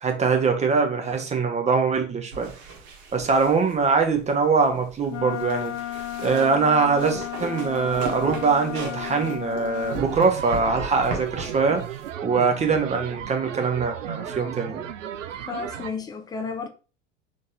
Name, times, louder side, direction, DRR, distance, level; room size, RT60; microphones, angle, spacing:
voice 1, 0.0-2.5 3.1-5.7 6.2-11.8 12.2-14.8, right 4 dB, 15° right, 0.9 m, -23 dB
sound 1, 2.3-12.1, right 4 dB, 60° right, 1.3 m, -37 dB
Wind instrument woodwind instrument, 5.1-10.0, left 14 dB, 60° left, 0.6 m, -33 dB
sound 2, 9.9-15.9, right 9 dB, 75° right, 0.5 m, -35 dB
voice 2, 15.4-16.7, left 5 dB, 10° left, 0.3 m, -32 dB
3.8 x 2.8 x 3.8 m
figure-of-eight pair, 75°, 38 cm